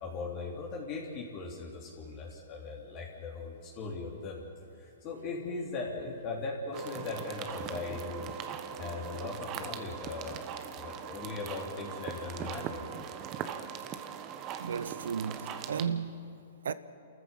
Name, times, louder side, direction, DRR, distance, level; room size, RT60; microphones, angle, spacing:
voice 1, 0.0-4.4 4.7-8.3 8.8-10.4 10.7-12.9, left 3 dB, 35° left, 3.2 m, -39 dB
sound 1, 6.7-15.8, right 8 dB, 30° right, 1.2 m, -40 dB
voice 2, 14.6-16.7, right 6 dB, 80° right, 1.0 m, -35 dB
28.5 x 14.5 x 7.4 m
hypercardioid pair, 140°, 0 cm